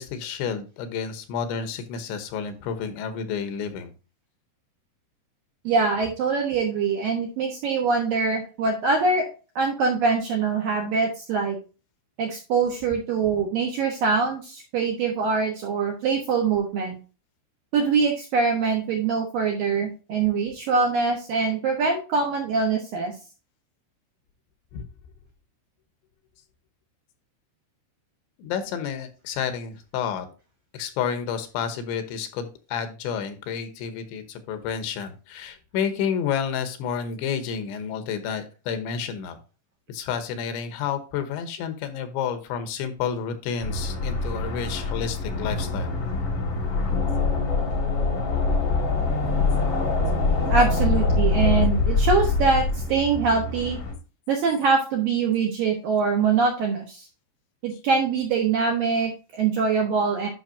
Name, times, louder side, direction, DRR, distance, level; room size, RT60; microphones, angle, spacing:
voice 1, 0.0-3.9 24.7-24.8 28.4-30.3 30.7-39.4 39.9-45.9, left 7 dB, 75° left, 8 dB, 3.1 m, -30 dB
voice 2, 5.6-9.3 9.6-11.6 12.2-17.0 17.7-23.1 50.5-53.8 54.3-57.1 57.6-60.3, right 4 dB, 70° right, 0 dB, 2.2 m, -23 dB
sound 1, 43.6-53.9, left 3 dB, 50° left, 1.4 m, -24 dB
10.5 x 6.0 x 2.6 m, 0.33 s
omnidirectional pair, 5.6 m